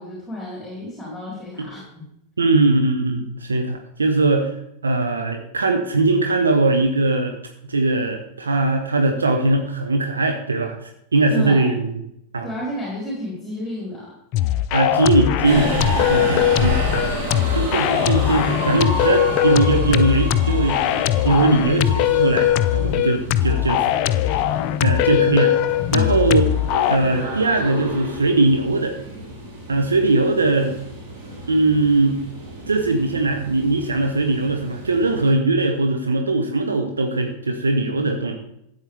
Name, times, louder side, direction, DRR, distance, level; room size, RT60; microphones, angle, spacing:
voice 1, 0.0-2.1 11.3-11.7 12.4-14.1 16.2-16.4 25.9-26.1, left 1 dB, ahead, -5 dB, 4.2 m, -31 dB
voice 2, 2.4-4.6 4.8-7.3 7.6-11.9 12.3-12.5 14.7-15.7 16.0-17.1 17.5-20.8 21.2-23.8 24.2-24.4 24.8-25.6 25.9-26.4 26.9-29.0 29.7-30.8 31.5-32.2 32.7-38.3, right 2 dB, 75° right, 5 dB, 0.9 m, -20 dB
sound 1, 14.3-27.0, left 12 dB, 45° left, 0.4 m, -20 dB
Subway metro underground, 15.4-35.3, right 1 dB, 45° right, 3.6 m, -31 dB
13.5 x 8.3 x 3.4 m, 0.78 s
figure-of-eight pair, 90°, 0 cm